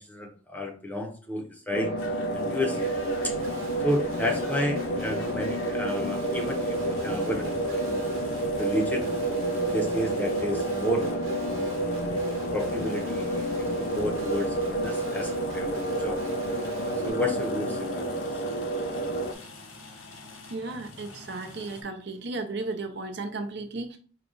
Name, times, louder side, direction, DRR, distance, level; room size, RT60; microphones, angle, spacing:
voice 1, 0.0-1.9 2.3-2.9 3.2-3.3 3.8-8.2 8.6-9.1 9.6-11.2 11.5-11.8 12.5-13.5 13.8-16.2 17.0-18.2, left 1 dB, 10° left, 2 dB, 0.6 m, -31 dB
sound 1, 1.7-19.3, right 1 dB, 50° left, 0.5 m, -29 dB
sound 2, 2.0-21.8, left 2 dB, 85° left, 1.0 m, -47 dB
Guitar, 2.8-17.1, right 1 dB, 80° right, 0.9 m, -45 dB
voice 2, 20.5-24.0, right 3 dB, 55° right, 6 dB, 0.5 m, -34 dB
4.8 x 2.3 x 3.8 m, 0.40 s
head